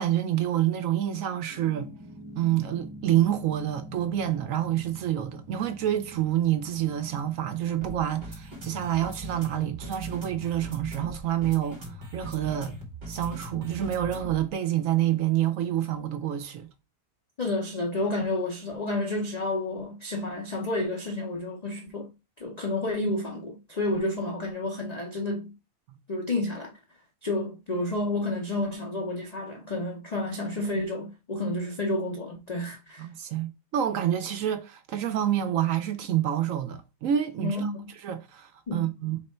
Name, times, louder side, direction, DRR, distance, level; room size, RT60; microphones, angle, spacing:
voice 1, 0.0-1.9 2.4-12.7 13.1-16.7 25.9-26.0 33.0-37.7 38.0-39.2, right 11 dB, 70° right, 0.9 m, -28 dB
sound 1, 1.5-14.5, right 1 dB, 30° right, 1.6 m, -42 dB
voice 2, 17.4-22.1 22.4-25.5 26.1-26.7 27.2-33.1 37.4-37.9 38.7-38.9, left 2 dB, 65° left, 0.4 m, -30 dB
3.9 x 3.2 x 4.3 m
omnidirectional pair, 1.7 m